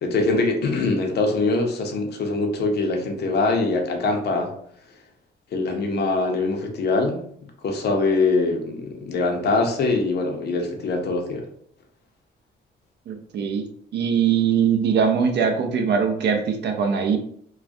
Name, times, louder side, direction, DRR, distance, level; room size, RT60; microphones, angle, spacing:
voice 1, 0.0-4.5 5.5-7.2 7.6-11.5, left 3 dB, 55° left, 3 dB, 0.6 m, -23 dB
voice 2, 13.1-13.6 13.9-17.2, right 7 dB, 60° right, 5 dB, 0.5 m, -21 dB
2.3 x 2.1 x 2.6 m, 0.64 s
cardioid pair, 90°, 20 cm